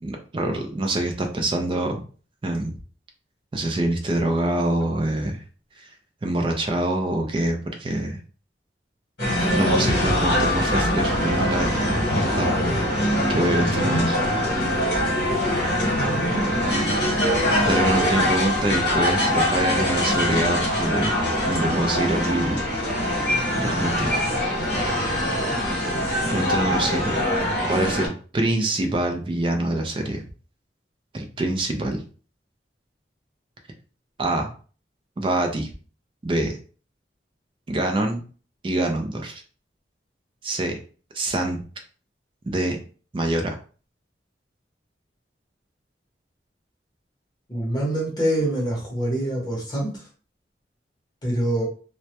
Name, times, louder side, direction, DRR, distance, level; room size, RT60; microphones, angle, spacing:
voice 1, 0.0-2.0 2.4-2.7 3.5-5.4 5.8-5.9 6.2-8.2 9.5-12.5 13.3-14.2 14.5-14.6 17.7-21.2 21.4-22.6 23.6-24.1 26.3-27.2 27.6-30.2 31.1-32.0 34.2-34.5 35.2-35.7 36.2-36.6 37.7-38.2 38.6-39.4 40.4-40.8 41.1-41.6 42.5-42.8 43.1-43.6, right 1 dB, 30° right, 4 dB, 0.3 m, -25 dB
sound 1, 9.2-28.1, left 1 dB, 65° left, 1.0 m, -23 dB
voice 2, 47.5-50.1 51.2-51.6, right 1 dB, 25° left, -3 dB, 0.7 m, -25 dB
2.1 x 2.0 x 2.8 m, 0.39 s
head